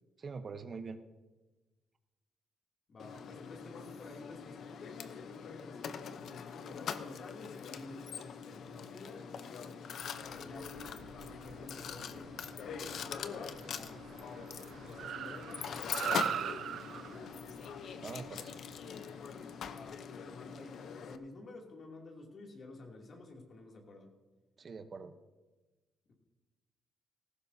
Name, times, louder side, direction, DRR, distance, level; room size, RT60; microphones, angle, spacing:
voice 1, 0.2-1.0 18.0-18.6 24.6-25.1, right 4 dB, 45° right, 8 dB, 0.9 m, -44 dB
voice 2, 2.9-9.8 10.3-12.3 12.6-17.3 19.7-24.1 26.1-26.2, left 2 dB, 50° left, 0 dB, 2.7 m, -51 dB
Mechanisms, 3.0-21.2, left 7 dB, 65° left, 0.7 m, -43 dB
Car, 10.1-19.7, right 10 dB, 70° right, 0.4 m, -43 dB
17.5 x 15.0 x 2.8 m, 1.2 s
cardioid pair, 90°, 0 cm